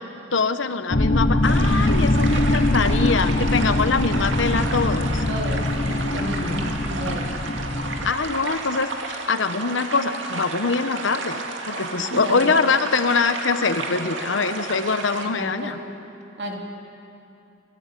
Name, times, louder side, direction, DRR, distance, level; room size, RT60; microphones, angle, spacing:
voice 1, 0.3-5.2 8.0-15.8, left 4 dB, 85° left, 10 dB, 1.0 m, -23 dB
sound 1, 0.9-8.1, left 1 dB, 45° left, 0.9 m, -22 dB
sound 2, 1.4-15.3, right 3 dB, 80° right, 2.1 m, -32 dB
voice 2, 5.3-7.3 11.9-12.5 15.2-15.7 16.4-16.5, equal, 60° right, 0 dB, 3.2 m, -32 dB
25.0 x 15.0 x 8.3 m, 2.7 s
head